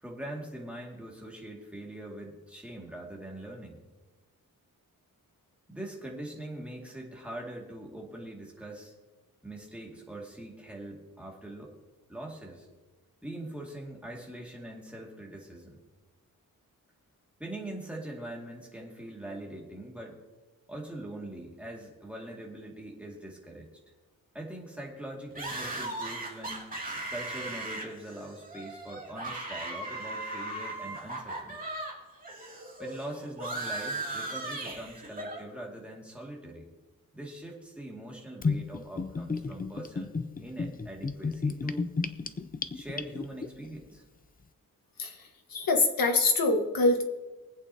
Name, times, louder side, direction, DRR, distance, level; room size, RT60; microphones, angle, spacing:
voice 1, 0.0-3.8 5.7-8.9 9.4-11.8 12.1-12.7 13.2-15.8 17.4-20.2 20.7-23.7 24.3-26.7 27.1-31.6 32.8-36.7 37.1-40.1 40.4-41.9 42.7-44.0, right 1 dB, 5° right, -2 dB, 2.1 m, -42 dB
sound 1, 25.4-31.9 32.2-35.4, right 2 dB, 25° right, 2.5 m, -37 dB
Gurgling / Bathtub (filling or washing), 38.4-43.5, left 4 dB, 25° left, 0.5 m, -32 dB
voice 2, 45.5-47.0, left 3 dB, 75° left, 4 dB, 1.5 m, -24 dB
23.5 x 8.5 x 2.8 m, 1.2 s
wide cardioid pair, 155°, 35 cm